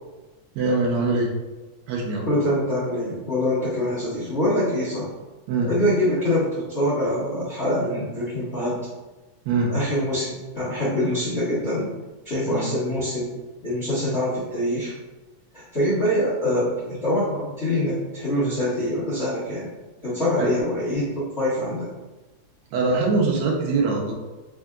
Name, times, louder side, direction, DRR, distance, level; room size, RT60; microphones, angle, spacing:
voice 1, 0.6-1.3 1.9-2.3 5.5-5.7 9.5-9.7 12.5-12.7 20.4-20.5 22.7-24.1, right 3 dB, 80° right, -1 dB, 1.9 m, -23 dB
voice 2, 2.2-5.1 5.6-8.8 9.7-11.9 12.2-13.3 13.6-14.9 15.5-19.7 20.0-21.9, left 1 dB, 40° left, -11 dB, 0.9 m, -24 dB
4.4 x 3.6 x 2.3 m, 1.2 s
omnidirectional pair, 3.3 m